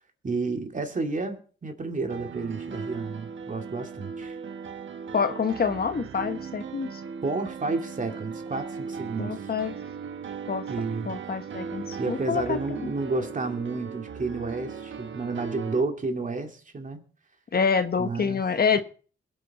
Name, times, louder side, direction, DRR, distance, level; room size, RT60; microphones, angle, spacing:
voice 1, 0.2-4.4 7.2-9.4 10.7-11.1 12.0-17.0 18.0-18.4, right 3 dB, 40° right, 2.5 m, -31 dB
Piano, 2.1-15.8, right 6 dB, 70° right, 1.3 m, -38 dB
voice 2, 5.1-7.0 9.2-9.7 10.5-10.7 11.0-12.9 17.5-18.8, left 5 dB, 50° left, 1.2 m, -27 dB
22.0 x 8.4 x 4.2 m
cardioid pair, 80°, 20 cm